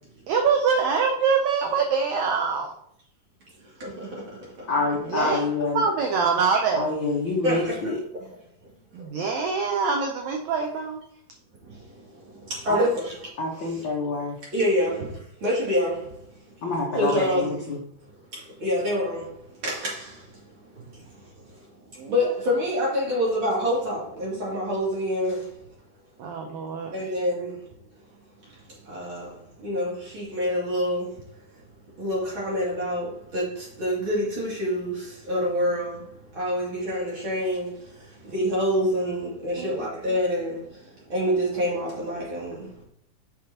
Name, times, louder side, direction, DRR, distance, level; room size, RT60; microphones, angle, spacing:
voice 1, 0.3-2.7 5.1-5.4 5.7-6.9 8.9-11.0 12.7-12.9 22.0-22.1 26.2-26.9 39.6-39.9, right 5 dB, 80° right, 3 dB, 1.6 m, -24 dB
voice 2, 3.8-4.7 7.4-7.8 9.0-9.1 11.6-13.1 13.6-13.8 14.5-16.5 17.0-17.5 18.3-21.3 22.1-25.6 26.9-27.6 28.4-31.2 32.0-42.8, equal, 35° right, -6 dB, 3.0 m, -27 dB
voice 3, 4.7-5.9 6.7-8.0 12.7-12.8 13.4-14.4 16.6-17.8, left 3 dB, 85° left, -3 dB, 1.0 m, -26 dB
8.1 x 5.8 x 2.9 m, 0.70 s
omnidirectional pair, 4.1 m